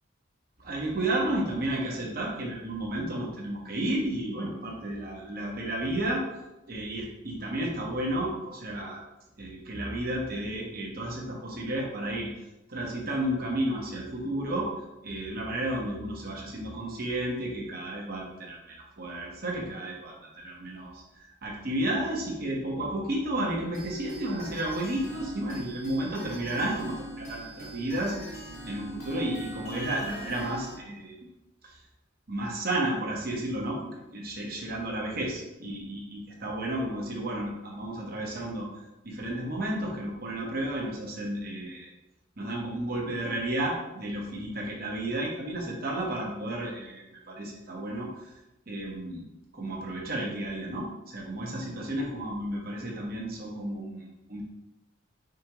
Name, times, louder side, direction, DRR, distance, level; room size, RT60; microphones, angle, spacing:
voice 1, 0.6-6.2 6.7-9.0 9.4-12.3 12.7-14.7 15.0-28.3 28.6-31.2 31.6-31.8 32.3-33.8 34.1-38.7 39.0-41.9 42.4-48.2 48.7-49.2 49.5-54.4, right 1 dB, 45° right, -2 dB, 1.0 m, -32 dB
sound 1, 23.7-30.8, right 1 dB, 45° left, 1.3 m, -42 dB
5.1 x 3.6 x 3.0 m, 0.96 s
head